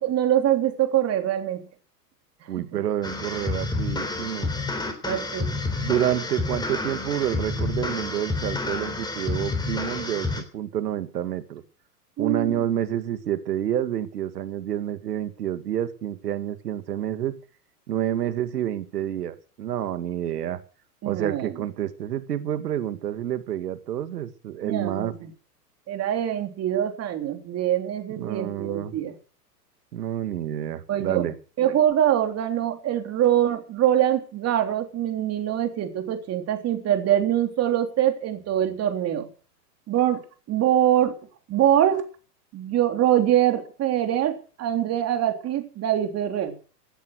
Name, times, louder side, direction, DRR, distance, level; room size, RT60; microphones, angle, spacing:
voice 1, 0.0-1.7 2.6-2.8 5.0-5.5 12.2-12.7 21.0-21.5 24.6-25.3 25.9-29.1 30.9-31.3 31.6-39.3 39.9-41.2 41.5-42.1 42.5-46.6, right 11 dB, 30° right, 6 dB, 3.3 m, -24 dB
voice 2, 2.5-4.5 5.8-11.6 12.2-17.3 17.9-20.6 21.0-25.1 28.2-28.9 29.9-31.3, right 11 dB, 75° right, 11 dB, 2.4 m, -28 dB
sound 1, 3.0-10.4, left 3 dB, 10° left, 3.4 m, -29 dB
17.0 x 10.5 x 6.3 m, 0.39 s
hypercardioid pair, 115°, 48 cm